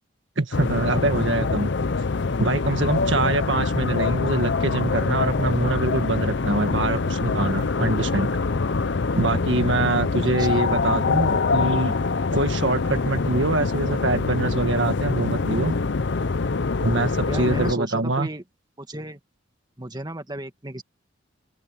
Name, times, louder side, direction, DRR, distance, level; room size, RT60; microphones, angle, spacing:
voice 1, 0.4-1.7 2.4-8.3 9.2-11.9 12.3-15.7 16.8-18.3, right 2 dB, 65° right, 1.8 m, -24 dB
sound 1, 0.5-17.7, left 4 dB, 60° left, 0.7 m, -24 dB
voice 2, 10.2-10.6 17.3-18.4 18.8-19.2 19.8-20.8, right 1 dB, 20° right, 2.0 m, -34 dB
open air
head